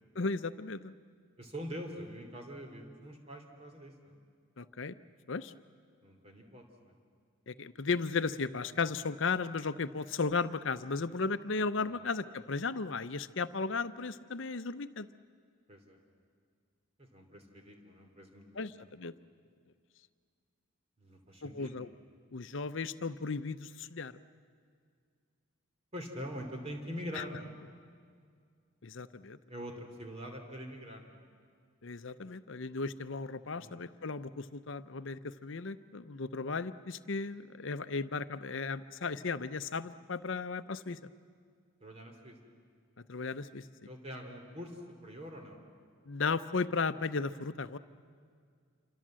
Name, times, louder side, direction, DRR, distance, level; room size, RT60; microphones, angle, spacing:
voice 1, 0.1-0.9 4.6-5.0 5.3-5.5 7.5-15.1 18.6-19.1 21.4-21.9 22.3-24.1 27.1-27.2 28.8-29.4 31.8-41.0 43.1-43.6 46.1-47.8, left 4 dB, 60° left, 12 dB, 0.7 m, -35 dB
voice 2, 1.4-4.2 6.0-6.9 11.8-12.1 15.7-16.0 17.0-18.7 21.0-21.7 25.9-27.5 29.5-31.2 33.5-33.8 41.8-42.4 43.8-45.6, equal, 30° right, 3 dB, 3.0 m, -44 dB
27.5 x 25.0 x 7.6 m, 2.1 s
head